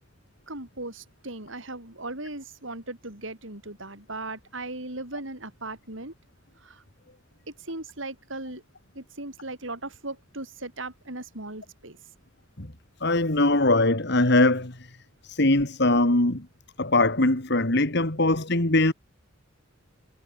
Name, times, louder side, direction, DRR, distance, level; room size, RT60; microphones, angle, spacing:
voice 1, 0.5-6.1 6.6-6.8 7.6-8.6 8.9-12.0, right 2 dB, 70° right, 6.4 m, -38 dB
voice 2, 13.0-14.8 15.2-16.5 16.8-18.9, left 2 dB, 55° left, 2.6 m, -21 dB
head